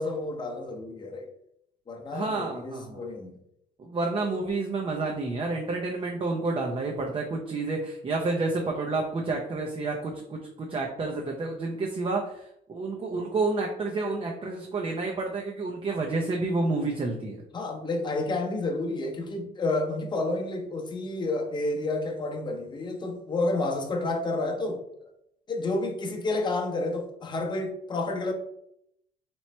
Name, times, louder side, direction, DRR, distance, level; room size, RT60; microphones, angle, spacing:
voice 1, 0.0-1.3 1.9-3.4 17.5-24.8 25.5-28.3, left 2 dB, 25° left, 0.8 m, -30 dB
voice 2, 2.1-3.0 3.8-17.4, right 3 dB, 30° right, 0.6 m, -29 dB
3.1 x 3.0 x 4.2 m
cardioid pair, 110°, 17 cm